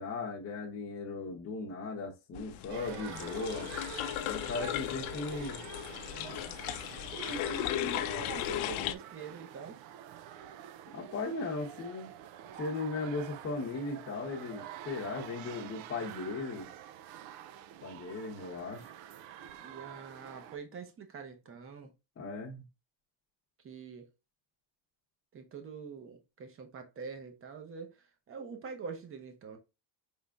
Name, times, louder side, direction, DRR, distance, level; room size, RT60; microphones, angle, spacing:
voice 1, 0.0-3.7 4.3-5.6 10.9-12.1 12.6-16.7 17.8-18.9 22.2-22.7, left 3 dB, 30° left, 0.8 m, -37 dB
sound 1, 2.3-8.9, left 14 dB, 80° left, 0.7 m, -36 dB
sound 2, 2.7-20.6, right 11 dB, 70° right, 0.5 m, -48 dB
voice 2, 6.1-6.5 7.1-9.8 19.5-21.9 23.6-24.1 25.3-29.6, right 5 dB, 25° right, 0.8 m, -44 dB
5.4 x 3.7 x 2.3 m
cardioid pair, 175°, 48 cm